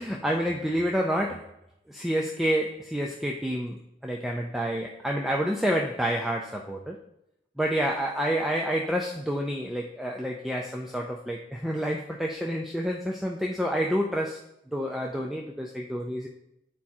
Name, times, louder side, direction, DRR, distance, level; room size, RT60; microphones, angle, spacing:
voice 1, 0.0-1.5 1.9-7.0 7.6-14.4 14.7-16.3, equal, ahead, 0 dB, 0.4 m, -28 dB
9.7 x 4.4 x 3.5 m, 0.83 s
head